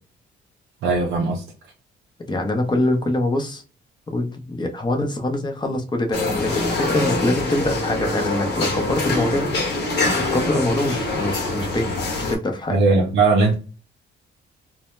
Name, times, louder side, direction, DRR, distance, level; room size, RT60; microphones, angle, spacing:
voice 1, 0.8-1.4 12.7-13.5, right 3 dB, 75° right, 0.5 m, -18 dB
voice 2, 2.3-3.6 4.1-9.5 9.8-12.8, left 1 dB, 20° left, 0.6 m, -24 dB
sound 1, 6.1-12.4, left 2 dB, 60° left, 0.9 m, -24 dB
2.1 x 2.0 x 3.0 m
cardioid pair, 90°, 20 cm